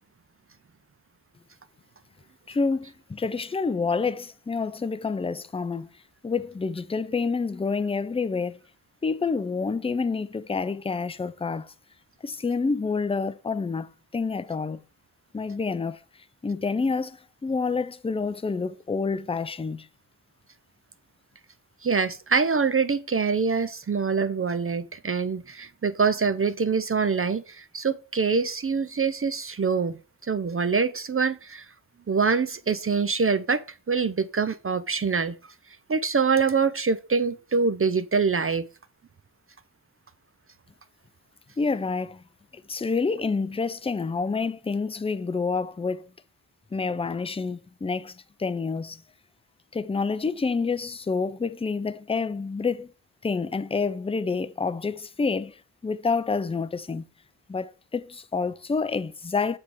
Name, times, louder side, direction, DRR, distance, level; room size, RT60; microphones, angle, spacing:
voice 1, 2.5-5.9 6.2-8.6 9.0-11.7 12.2-14.8 15.3-16.0 16.4-19.9 41.6-42.2 42.5-46.1 46.7-49.0 49.7-52.9 53.2-57.0 57.5-59.6, left 4 dB, 15° left, 0.4 m, -28 dB
voice 2, 21.8-31.7 32.1-35.4 35.9-38.7, right 5 dB, 35° right, 0.5 m, -25 dB
7.4 x 3.4 x 5.9 m
cardioid pair, 65°, 41 cm